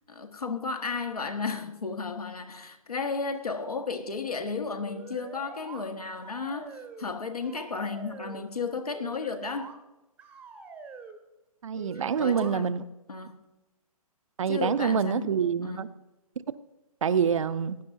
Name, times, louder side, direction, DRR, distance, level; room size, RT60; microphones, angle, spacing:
voice 1, 0.1-9.7 12.1-12.7 13.1-13.4 14.5-15.3 15.6-15.9, left 4 dB, 80° left, 1.5 m, -33 dB
sound 1, 4.8-5.9 6.2-7.1 7.4-8.5 8.9-9.7 10.2-11.2 11.7-12.5, right 4 dB, 10° right, 0.7 m, -45 dB
voice 2, 11.6-12.8 14.4-15.9 17.0-17.8, right 7 dB, 55° right, 0.6 m, -26 dB
18.0 x 10.5 x 2.6 m
figure-of-eight pair, 135°, 19 cm